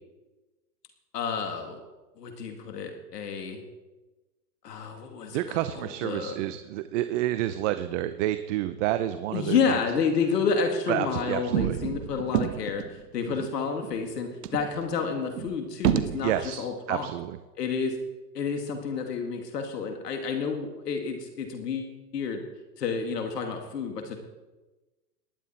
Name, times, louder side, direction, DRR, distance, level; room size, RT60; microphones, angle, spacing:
voice 1, 1.1-1.8 2.2-3.6 4.6-6.4 9.3-17.1 17.6-18.0 18.3-22.4 22.8-24.2, left 5 dB, 80° left, 4 dB, 2.4 m, -30 dB
voice 2, 5.3-9.8 10.9-11.8 13.4-13.5 16.2-17.4, right 13 dB, 50° right, 11 dB, 0.9 m, -29 dB
sound 1, 11.1-13.0 13.5-13.6 13.8-13.9 14.4-16.4, right 11 dB, 75° right, 1.2 m, -29 dB
19.0 x 11.5 x 4.4 m, 1.1 s
hypercardioid pair, 115°, 48 cm